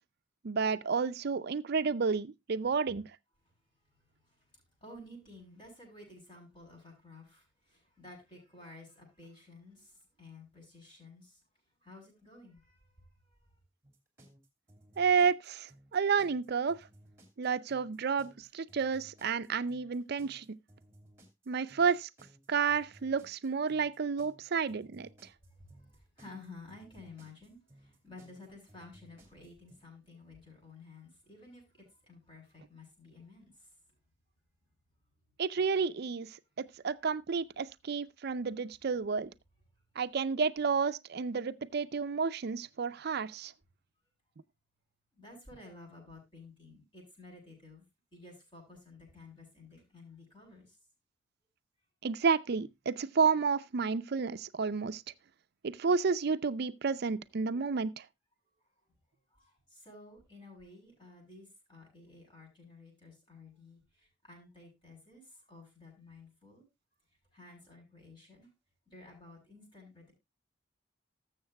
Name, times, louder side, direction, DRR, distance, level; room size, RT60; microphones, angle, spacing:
voice 1, 0.4-3.1 15.0-16.8 17.4-20.6 21.5-22.1 22.5-25.1 35.4-39.3 40.0-43.5 52.0-55.0 55.6-58.0, right 5 dB, 55° right, 0.5 m, -31 dB
voice 2, 3.9-11.4 11.8-13.5 25.4-33.7 45.1-47.8 48.1-50.8 58.5-58.6 59.3-66.7 67.3-68.5 68.9-70.1, left 2 dB, 25° left, 8.0 m, -53 dB
sound 1, 13.8-29.8, right 1 dB, 15° right, 2.8 m, -60 dB
19.5 x 7.3 x 2.2 m
head